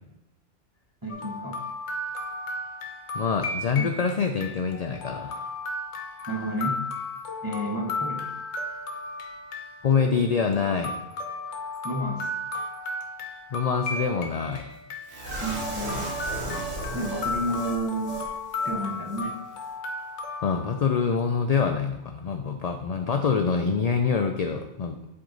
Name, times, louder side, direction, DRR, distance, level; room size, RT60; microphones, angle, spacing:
voice 1, 1.0-1.6 3.7-3.9 6.3-6.8 7.4-8.3 11.8-12.3 15.4-16.0 16.9-18.3 18.6-19.3, right 1 dB, 20° right, -1 dB, 0.8 m, -31 dB
sound 1, 1.1-20.8, left 2 dB, 85° left, 1.1 m, -35 dB
voice 2, 3.1-5.5 9.8-10.9 13.5-14.7 20.4-25.0, left 5 dB, 60° left, 5 dB, 0.4 m, -25 dB
sound 2, 15.1-18.3 18.6-18.7 19.1-19.2, right 2 dB, 75° right, 1.7 m, -34 dB
7.6 x 3.6 x 3.9 m, 0.89 s
omnidirectional pair, 1.1 m